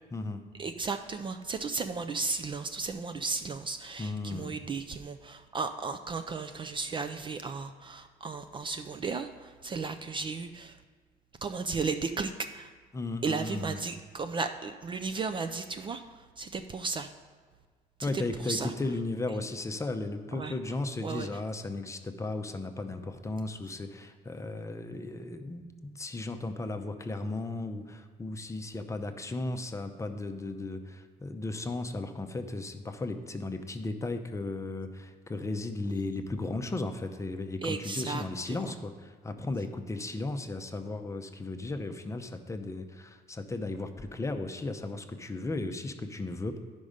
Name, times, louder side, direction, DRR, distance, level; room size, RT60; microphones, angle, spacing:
voice 1, 0.6-10.8 11.4-12.7 13.2-17.1 18.0-18.7 20.4-20.5 21.0-21.3 37.6-38.7, right 4 dB, 30° right, 8 dB, 0.4 m, -35 dB
voice 2, 4.0-4.5 12.9-13.8 18.0-46.6, left 2 dB, 15° left, 7 dB, 0.6 m, -35 dB
10.5 x 5.3 x 5.0 m, 1.5 s
cardioid pair, 110°, 17 cm